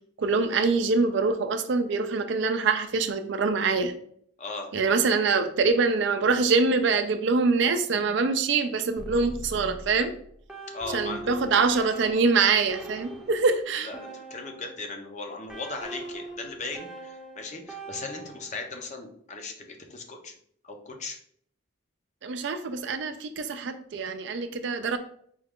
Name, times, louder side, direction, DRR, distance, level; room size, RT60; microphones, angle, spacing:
voice 1, 0.2-3.9 4.7-10.1 10.9-13.9 22.2-25.0, right 4 dB, 60° right, 9 dB, 0.4 m, -24 dB
sound 1, 9.0-14.9 15.5-18.7, right 2 dB, 5° right, 0.6 m, -42 dB
voice 2, 10.7-11.3 13.8-20.3 20.6-21.2, left 3 dB, 35° left, 3 dB, 0.6 m, -38 dB
4.6 x 2.4 x 3.5 m, 0.63 s
head